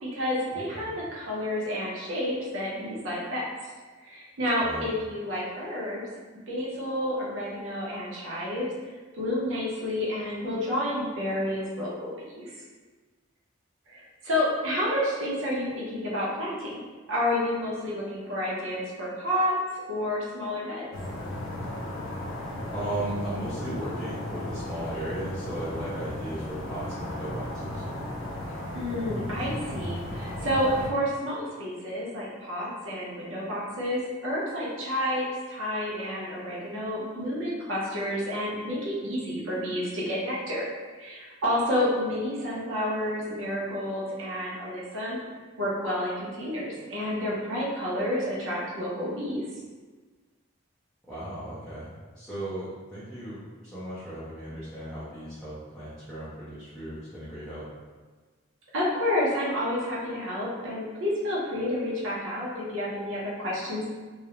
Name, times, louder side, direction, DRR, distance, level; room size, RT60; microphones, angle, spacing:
voice 1, 0.0-3.7 4.0-6.0 6.5-8.7 9.1-12.6 13.9-16.8 17.1-20.9 28.7-40.7 41.0-45.2 45.6-49.4 58.7-63.9, left 1 dB, 70° right, -5 dB, 0.6 m, -30 dB
voice 2, 0.5-0.9 4.6-4.9 22.7-27.9 51.1-57.7, right 1 dB, ahead, -14 dB, 0.5 m, -36 dB
sound 1, 20.9-30.9, left 1 dB, 70° left, 0.4 m, -35 dB
2.4 x 2.0 x 2.8 m, 1.4 s
head